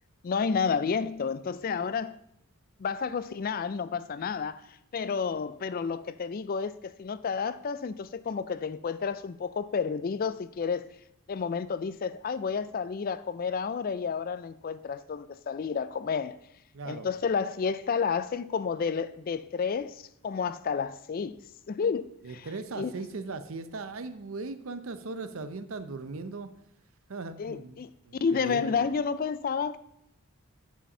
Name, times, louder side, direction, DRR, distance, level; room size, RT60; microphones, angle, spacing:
voice 1, 0.2-2.2 2.8-10.9 11.3-16.4 16.9-21.4 21.7-22.5 22.8-22.9 27.4-27.9 28.2-29.8, left 5 dB, 40° left, 0.3 m, -31 dB
voice 2, 16.7-17.1 22.2-26.5 27.1-28.8, right 3 dB, 65° right, 0.6 m, -38 dB
7.4 x 5.7 x 5.4 m
head